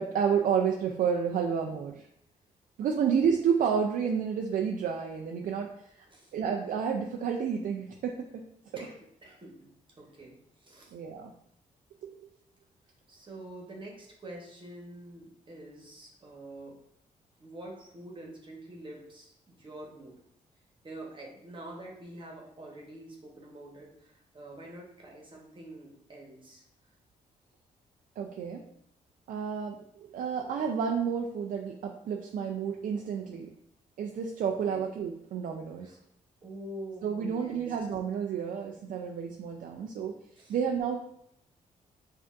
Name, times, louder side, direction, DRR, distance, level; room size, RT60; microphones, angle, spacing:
voice 1, 0.0-2.0 2.8-5.7 6.0-6.1 6.3-8.4 10.9-11.3 12.0-12.2 28.2-28.6 29.3-29.8 30.1-33.5 34.0-36.0 37.0-40.1 40.5-41.0, right 7 dB, 65° right, 2 dB, 0.4 m, -30 dB
voice 2, 9.2-9.7 10.0-10.9 13.1-16.8 17.4-20.1 20.8-26.6 34.6-34.8 35.8-36.0 36.4-37.7 40.4-40.5, right 1 dB, 35° right, -1 dB, 1.1 m, -46 dB
5.1 x 2.5 x 2.5 m, 0.74 s
cardioid pair, 75°, 15 cm